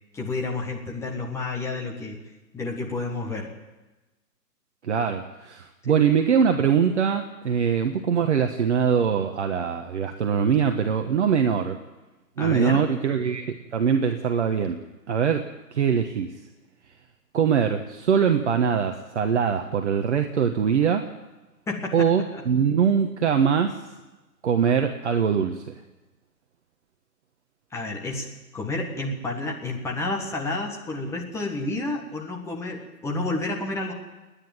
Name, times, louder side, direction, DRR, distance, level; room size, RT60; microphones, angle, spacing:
voice 1, 0.1-2.2 2.5-3.5 5.8-5.9 12.4-12.9 21.7-22.4 27.7-33.9, left 2 dB, 5° left, 0 dB, 1.7 m, -30 dB
voice 2, 4.8-11.8 12.4-14.8 15.1-15.4 15.7-16.3 17.3-21.1 21.9-23.8 24.4-25.7, right 7 dB, 45° right, 5 dB, 1.4 m, -22 dB
30.0 x 10.0 x 9.2 m, 1.1 s
figure-of-eight pair, 140°, 50 cm